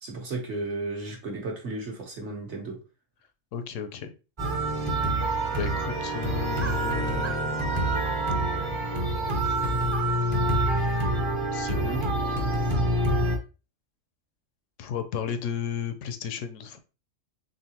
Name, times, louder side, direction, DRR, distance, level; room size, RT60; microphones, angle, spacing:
voice 1, 0.0-2.8 11.7-12.0, right 3 dB, 60° right, 1 dB, 1.4 m, -34 dB
voice 2, 3.5-4.1 5.5-7.6 11.5-11.9 14.8-16.8, left 8 dB, 80° left, 10 dB, 0.9 m, -33 dB
sound 1, 4.4-13.4, right 1 dB, 25° right, 0.7 m, -26 dB
3.9 x 3.7 x 2.8 m, 0.31 s
omnidirectional pair, 1.3 m